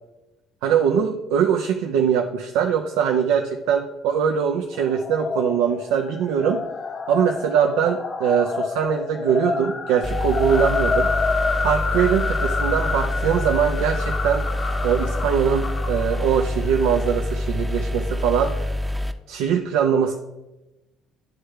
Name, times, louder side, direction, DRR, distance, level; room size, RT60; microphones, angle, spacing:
voice 1, 0.6-6.6 7.1-11.1 11.6-14.5 14.8-18.7 19.3-20.1, right 8 dB, 75° right, 3 dB, 0.4 m, -22 dB
sound 1, 4.7-17.2, left 4 dB, 40° left, 0.7 m, -28 dB
sound 2, 10.0-19.1, left 1 dB, 10° right, 0.7 m, -26 dB
9.4 x 3.3 x 4.7 m, 1.0 s
hypercardioid pair, 60°, 0 cm